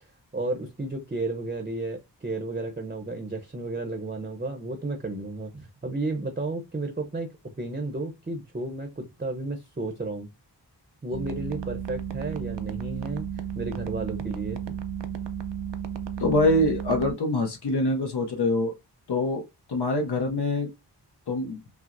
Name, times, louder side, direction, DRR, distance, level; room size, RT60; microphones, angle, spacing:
voice 1, 0.3-10.3 11.0-14.8, right 2 dB, 20° right, 0.6 m, -33 dB
sound 1, 11.1-17.1, right 8 dB, 85° right, 0.6 m, -33 dB
voice 2, 16.2-18.7 19.1-20.7 21.3-21.6, left 2 dB, 65° left, 0.7 m, -25 dB
5.8 x 2.0 x 2.5 m
wide cardioid pair, 60°, 42 cm